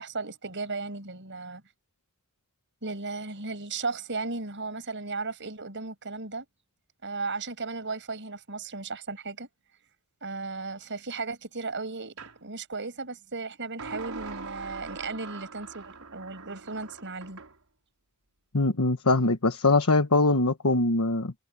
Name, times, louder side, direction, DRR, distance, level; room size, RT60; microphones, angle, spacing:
voice 1, 0.0-1.6 2.8-6.5 7.0-9.5 10.2-12.1 12.4-17.4, right 3 dB, 60° right, 6.2 m, -35 dB
sound 1, 12.2-12.4 13.8-17.6, right 4 dB, 90° right, 4.4 m, -42 dB
voice 2, 18.5-21.3, left 2 dB, 80° left, 1.3 m, -22 dB
head